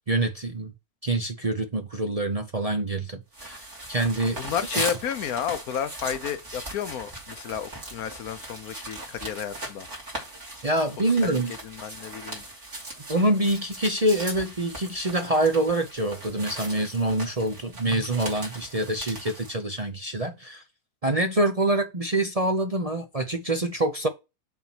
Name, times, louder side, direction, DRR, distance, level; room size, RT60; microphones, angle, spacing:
voice 1, 0.1-0.7 1.0-4.4 4.7-4.8 10.6-11.5 13.1-20.6 21.0-24.1, right 1 dB, 30° right, 0.7 m, -26 dB
sound 1, 3.3-19.6, right 1 dB, 50° right, 3.4 m, -38 dB
voice 2, 4.2-9.9 11.2-12.4, left 8 dB, 75° left, 1.2 m, -32 dB
7.1 x 4.3 x 6.1 m
omnidirectional pair, 1.6 m